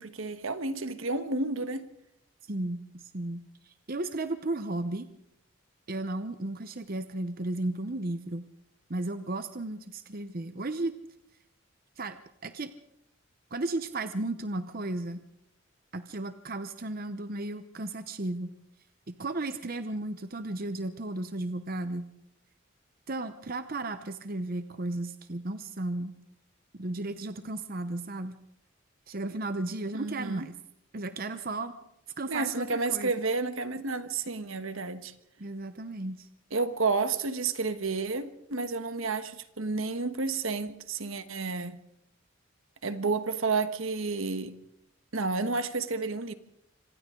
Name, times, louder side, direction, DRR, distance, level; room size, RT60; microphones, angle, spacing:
voice 1, 0.0-1.9 29.9-30.4 32.3-35.1 36.5-41.8 42.8-44.6 45.1-46.3, right 3 dB, 75° right, 1.3 m, -31 dB
voice 2, 2.5-5.1 5.9-8.5 8.9-11.0 12.0-12.7 13.5-15.2 15.9-18.5 19.1-22.1 23.1-26.1 26.7-28.3 29.1-30.6 30.9-31.7 32.2-33.1 35.4-36.3, right 2 dB, 45° right, 0.8 m, -34 dB
26.0 x 26.0 x 3.8 m
head